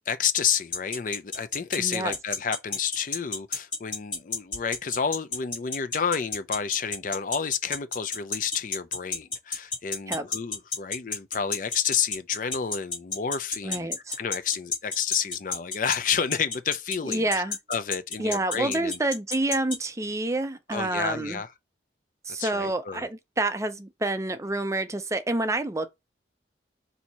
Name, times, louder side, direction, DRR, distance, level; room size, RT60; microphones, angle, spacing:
voice 1, 0.1-13.9 14.2-19.0 20.7-21.5 22.4-23.1, left 7 dB, 45° left, 0.4 m, -30 dB
sound 1, 0.7-19.8, left 4 dB, 25° left, 1.4 m, -29 dB
voice 2, 1.8-2.1 10.1-10.2 13.6-14.2 17.0-17.6 18.2-21.4 22.2-25.9, right 2 dB, 15° right, 0.4 m, -28 dB
4.4 x 2.7 x 4.1 m
head